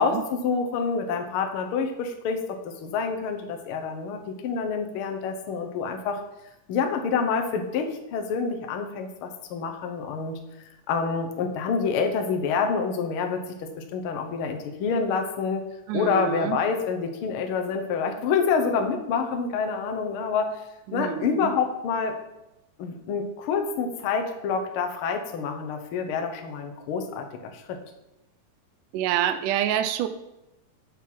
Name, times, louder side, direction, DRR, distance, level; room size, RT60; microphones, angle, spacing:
voice 1, 0.0-6.2 6.7-10.4 10.9-15.6 15.9-20.6 20.9-22.2 22.8-27.8, left 5 dB, 70° left, 5 dB, 1.3 m, -27 dB
voice 2, 15.9-16.6 20.9-21.5 28.9-30.1, right 10 dB, 80° right, 10 dB, 2.2 m, -27 dB
8.4 x 5.8 x 5.8 m, 0.93 s
omnidirectional pair, 3.7 m